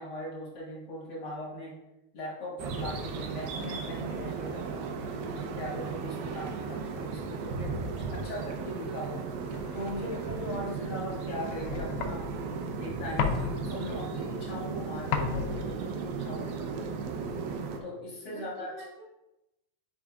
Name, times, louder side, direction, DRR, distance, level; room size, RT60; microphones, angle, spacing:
voice 1, 0.0-1.8 2.1-4.8 5.2-9.2 9.7-12.3 12.8-16.5 17.8-18.7, left 1 dB, 60° left, -5 dB, 1.0 m, -39 dB
sound 1, 2.6-17.8, right 5 dB, 90° right, 2.5 m, -36 dB
sound 2, 8.9-17.6, left 7 dB, 90° left, 2.5 m, -37 dB
voice 2, 16.2-17.2 18.3-19.0, right 3 dB, 70° right, -4 dB, 1.5 m, -48 dB
9.2 x 4.9 x 2.4 m, 0.92 s
omnidirectional pair, 4.1 m